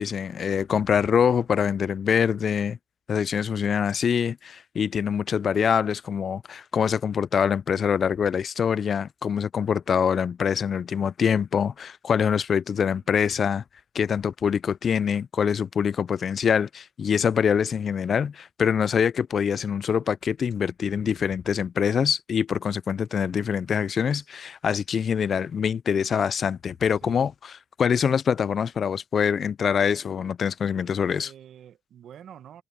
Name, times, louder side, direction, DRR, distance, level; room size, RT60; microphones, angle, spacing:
voice 1, 0.0-2.8 3.1-13.6 13.9-27.5 27.8-31.3, left 7 dB, 50° left, 0.3 m, -24 dB
voice 2, 30.8-32.6, right 9 dB, 70° right, 1.6 m, -47 dB
cardioid pair, 90°, 0 cm